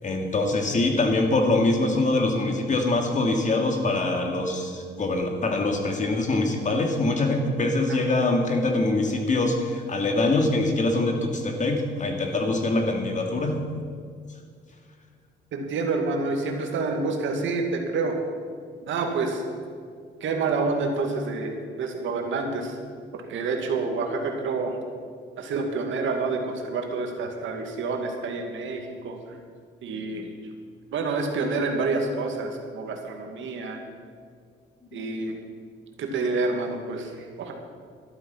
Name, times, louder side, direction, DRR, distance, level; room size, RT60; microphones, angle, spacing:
voice 1, 0.0-13.6 29.9-30.0 34.9-35.1, left 2 dB, 40° left, 3 dB, 2.5 m, -24 dB
voice 2, 15.5-18.2 18.9-19.4 20.2-22.8 23.1-24.8 25.4-29.2 29.8-30.3 30.9-33.8 34.9-35.4 36.0-37.5, right 3 dB, 75° right, 3 dB, 2.1 m, -28 dB
12.0 x 12.0 x 5.9 m, 2.1 s
cardioid pair, 90°, 20 cm